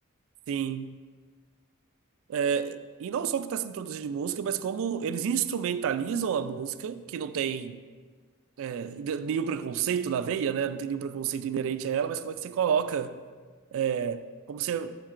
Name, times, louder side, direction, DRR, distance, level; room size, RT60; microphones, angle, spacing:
voice 1, 0.5-1.0 2.3-7.8 8.6-13.2 13.7-15.0, right 7 dB, 65° right, 0.3 m, -30 dB
7.3 x 7.2 x 2.5 m
head